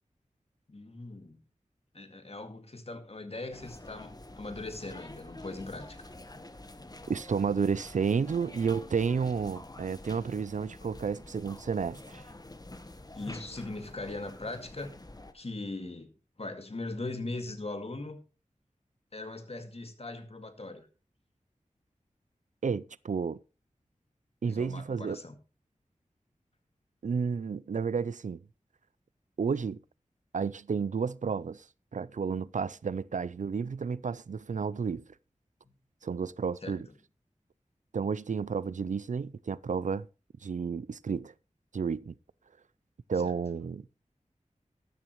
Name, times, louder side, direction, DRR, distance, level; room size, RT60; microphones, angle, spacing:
voice 1, 0.7-1.4 1.9-6.1 13.2-15.0 15.3-16.1 16.4-18.2 19.1-20.9 24.5-25.4 36.6-36.8 43.2-43.3, left 2 dB, 50° left, 2.1 m, -40 dB
sound 1, 3.5-15.3, left 2 dB, 30° left, 1.2 m, -47 dB
voice 2, 7.1-12.2 22.6-23.4 24.4-25.2 27.0-28.4 29.4-29.8 30.3-31.6 31.9-35.0 36.0-36.9 37.9-40.1 40.4-41.3 41.7-42.1 43.1-43.8, right 5 dB, 70° right, 0.5 m, -31 dB
13.0 x 12.5 x 3.1 m
wide cardioid pair, 50°, 13 cm